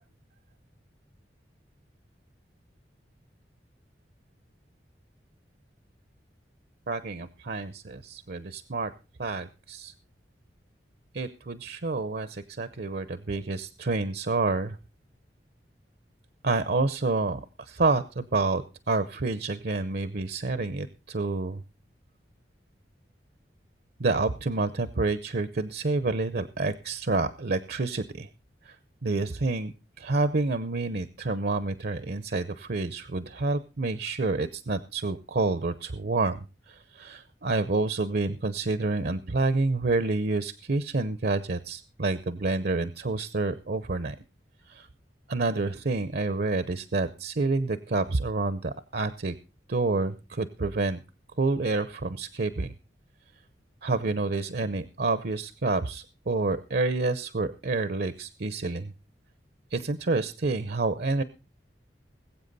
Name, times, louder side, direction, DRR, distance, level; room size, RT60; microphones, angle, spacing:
voice 1, 6.9-8.9 9.2-9.9 11.1-14.8 16.4-17.4 17.7-18.6 18.9-21.6 24.0-28.3 29.0-29.7 30.0-36.4 37.0-44.1 44.8-44.9 45.3-49.3 49.7-51.0 51.4-52.7 53.8-58.9 59.7-61.2, right 3 dB, 60° right, 13 dB, 0.7 m, -28 dB
21.0 x 8.2 x 4.0 m, 0.31 s
head